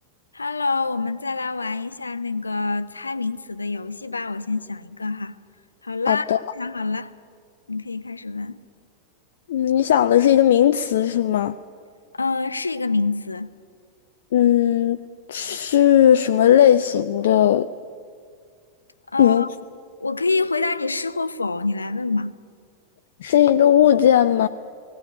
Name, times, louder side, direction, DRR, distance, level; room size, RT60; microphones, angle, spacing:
voice 1, 0.3-5.4 5.8-7.1 7.7-8.6 12.1-13.5 19.1-19.5 20.0-22.3, left 3 dB, 80° left, 0.9 m, -26 dB
voice 2, 6.1-6.4 9.5-11.6 14.3-15.0 15.3-17.7 19.2-19.4 23.2-24.5, left 10 dB, 60° left, 0.5 m, -17 dB
20.0 x 17.0 x 9.7 m
figure-of-eight pair, 90°, 0 cm